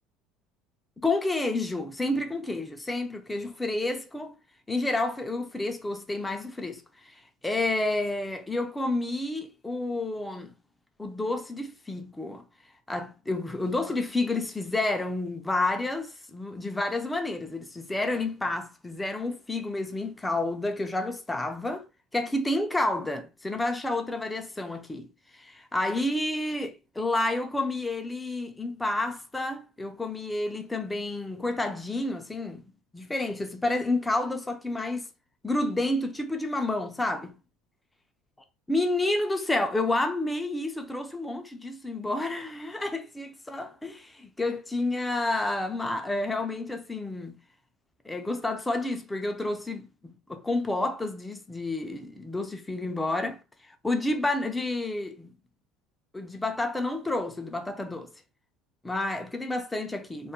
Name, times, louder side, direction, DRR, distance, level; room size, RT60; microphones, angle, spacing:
voice 1, 1.0-4.3 4.7-7.1 7.4-10.5 11.0-12.4 12.9-21.8 22.1-25.1 25.4-35.1 35.4-37.4 38.7-47.4 48.1-53.4 53.8-55.3 56.1-58.1 58.8-60.3, left 2 dB, 10° left, 0.4 m, -30 dB
2.3 x 2.0 x 2.8 m
supercardioid pair, 110°, 0 cm